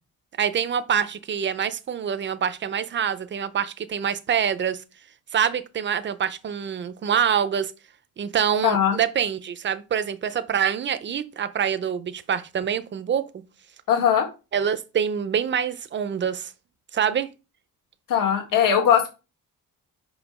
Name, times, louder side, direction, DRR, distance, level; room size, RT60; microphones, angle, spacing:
voice 1, 0.4-4.8 5.3-7.7 8.2-13.4 14.5-16.5 16.9-17.3, right 8 dB, 35° right, 0.5 m, -25 dB
voice 2, 8.6-8.9 13.9-14.3 18.1-19.1, left 8 dB, 65° left, 1.8 m, -19 dB
5.7 x 5.2 x 4.7 m
wide cardioid pair, 175°, 35 cm